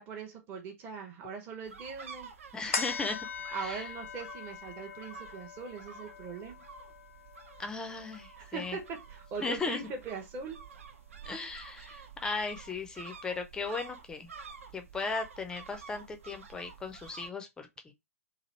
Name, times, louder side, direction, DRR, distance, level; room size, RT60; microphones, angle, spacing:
voice 1, 0.0-2.3 3.5-6.6 8.4-10.6, right 5 dB, 25° right, 0.8 m, -41 dB
sound 1, 1.6-17.3, right 5 dB, 60° right, 0.7 m, -50 dB
voice 2, 2.5-3.3 3.6-3.8 7.6-8.8 9.4-9.8 11.2-14.3 14.7-17.9, left 4 dB, 10° left, 0.5 m, -37 dB
sound 2, 2.7-9.5 9.9-10.0, left 6 dB, 60° left, 0.6 m, -42 dB
3.0 x 2.5 x 4.0 m
figure-of-eight pair, 115°, 8 cm